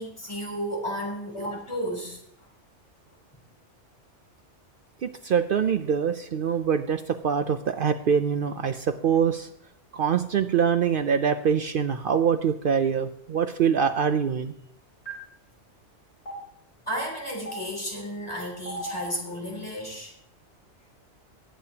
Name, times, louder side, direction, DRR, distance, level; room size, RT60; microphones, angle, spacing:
voice 1, 0.0-2.5 16.9-20.1, equal, 25° left, -1 dB, 3.4 m, -33 dB
voice 2, 5.0-9.5 9.9-14.5, right 7 dB, 60° right, 9 dB, 0.6 m, -24 dB
Stream, 15.1-15.2 16.3-16.4 17.5-17.6 18.7-19.0, right 1 dB, 70° left, 4.6 m, -34 dB
19.0 x 8.6 x 2.8 m, 0.71 s
omnidirectional pair, 1.2 m